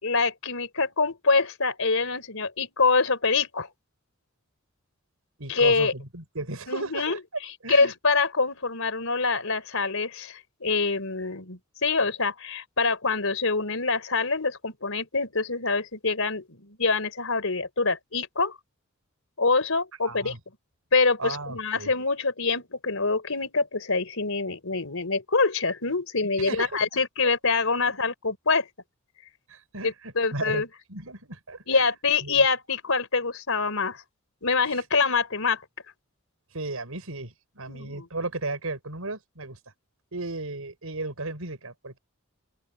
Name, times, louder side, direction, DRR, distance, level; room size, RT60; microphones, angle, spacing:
voice 1, 0.0-3.7 5.5-5.9 6.7-7.2 7.7-18.5 19.4-20.3 20.9-28.7 29.8-30.7 31.7-34.0 34.4-35.6 37.7-38.1, left 4 dB, 70° left, 4.8 m, -25 dB
voice 2, 5.4-7.2 7.6-7.9 20.0-20.4 21.2-21.9 26.4-27.0 27.8-28.0 29.5-30.6 30.9-31.9 32.2-32.4 36.5-39.6 40.1-42.0, right 2 dB, 90° right, 5.3 m, -35 dB
open air
head